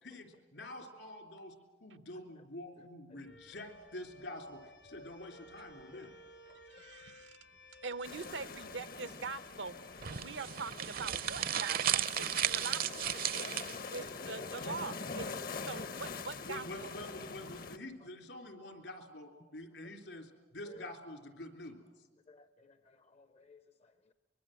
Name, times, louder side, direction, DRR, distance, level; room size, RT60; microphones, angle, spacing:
voice 1, 0.0-6.1 16.4-21.8, left 1 dB, 75° left, 3.3 m, -47 dB
sound 1, 3.2-10.3, left 1 dB, 90° left, 3.0 m, -57 dB
voice 2, 6.7-7.4 7.8-9.8 10.1-13.5 13.9-16.9, right 4 dB, 80° right, 0.9 m, -43 dB
sound 2, 8.0-17.8, left 4 dB, 55° left, 0.9 m, -44 dB
sound 3, 10.0-14.0, right 10 dB, 55° right, 0.7 m, -34 dB
voice 3, 22.3-24.1, left 3 dB, 35° left, 0.6 m, -59 dB
24.5 x 22.0 x 7.7 m
head